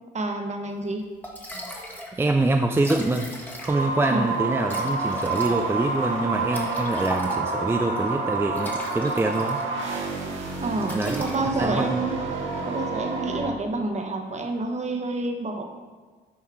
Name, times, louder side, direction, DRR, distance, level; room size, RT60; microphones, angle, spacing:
voice 1, 0.1-1.0 1.5-1.7 4.1-4.2 10.6-12.2 12.6-15.6, right 2 dB, 35° right, 3 dB, 1.1 m, -28 dB
Liquid, 0.9-1.0 1.2-2.2 2.5-2.6 2.7-4.0 4.7-7.7 8.4-9.9 10.2-10.4 10.8-11.9, equal, 10° left, 1.2 m, -38 dB
voice 2, 2.1-3.3 3.6-9.6 10.9-11.2 11.6-12.0, right 2 dB, 10° right, 4 dB, 0.4 m, -25 dB
sound 1, 3.7-13.5, right 3 dB, 75° right, 1.5 m, -29 dB
7.2 x 4.5 x 4.8 m, 1.4 s
cardioid pair, 90°, 20 cm